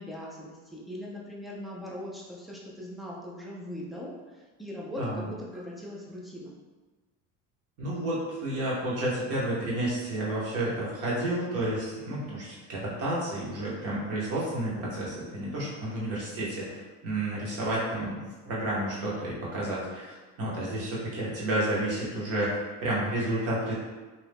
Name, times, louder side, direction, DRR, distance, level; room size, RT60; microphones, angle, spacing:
voice 1, 0.0-6.5, left 1 dB, ahead, -5 dB, 0.3 m, -40 dB
voice 2, 5.0-5.3 7.8-23.7, right 1 dB, 40° right, -6 dB, 1.2 m, -31 dB
2.7 x 2.4 x 3.4 m, 1.3 s
cardioid pair, 140°, 36 cm